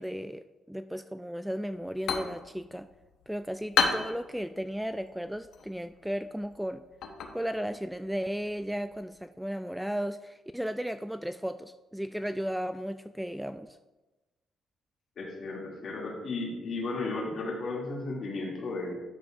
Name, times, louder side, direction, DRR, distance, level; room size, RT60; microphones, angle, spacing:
voice 1, 0.0-2.9 3.3-6.8 7.3-13.8, equal, 5° right, 10 dB, 0.3 m, -35 dB
sound 1, 1.7-9.2, left 6 dB, 75° left, 1.0 m, -35 dB
voice 2, 15.2-19.0, left 3 dB, 55° left, -3 dB, 2.5 m, -34 dB
11.0 x 6.9 x 2.5 m, 1.1 s
cardioid pair, 90°, 0 cm